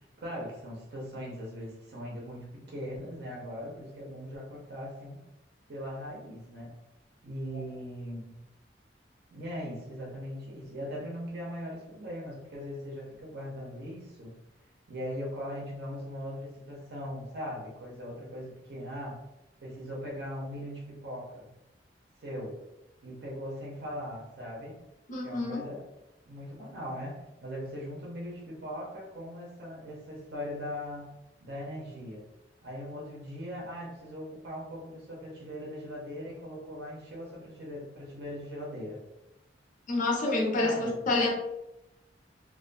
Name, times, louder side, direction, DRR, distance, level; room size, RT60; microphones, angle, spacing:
voice 1, 0.0-5.2 5.7-6.7 7.2-8.4 9.3-14.3 14.9-19.2 19.6-21.5 22.2-22.6 23.0-24.7 25.2-25.8 26.2-31.1 31.4-32.2 32.6-39.0 40.6-41.1, equal, 60° right, -3 dB, 0.7 m, -40 dB
voice 2, 25.1-25.6 39.9-41.3, left 2 dB, 45° left, -1 dB, 0.5 m, -28 dB
2.5 x 2.3 x 2.2 m, 0.93 s
head